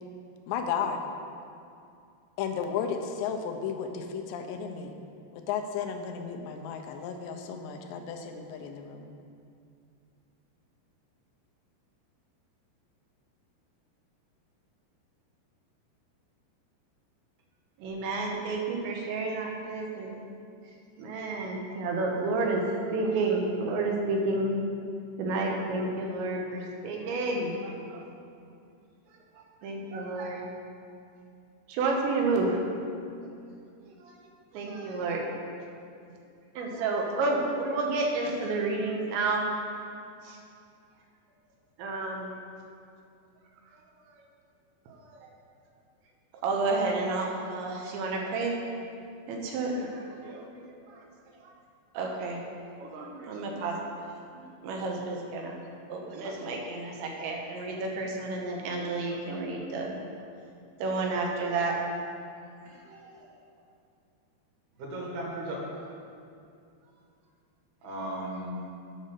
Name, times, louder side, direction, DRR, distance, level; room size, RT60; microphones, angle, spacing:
voice 1, 0.5-1.0 2.4-5.0 5.3-9.1, left 7 dB, 85° left, 4 dB, 3.0 m, -33 dB
voice 2, 17.8-20.2 21.0-24.5 25.2-28.0 29.3-30.4 31.7-32.6 33.9-34.2 34.5-35.2 36.6-39.4 40.2-40.4 41.8-42.3 44.9-45.3 46.4-48.6 49.3-51.0 51.4-51.5 51.9-52.4 52.8-54.1 54.3-55.6 55.9-59.9 60.8-61.8 62.9-63.1, right 3 dB, 90° right, 0 dB, 3.4 m, -31 dB
voice 3, 62.7-63.3 64.8-65.6 67.8-68.5, right 1 dB, 65° right, -3 dB, 3.4 m, -37 dB
8.7 x 5.3 x 6.5 m, 2.5 s
omnidirectional pair, 5.0 m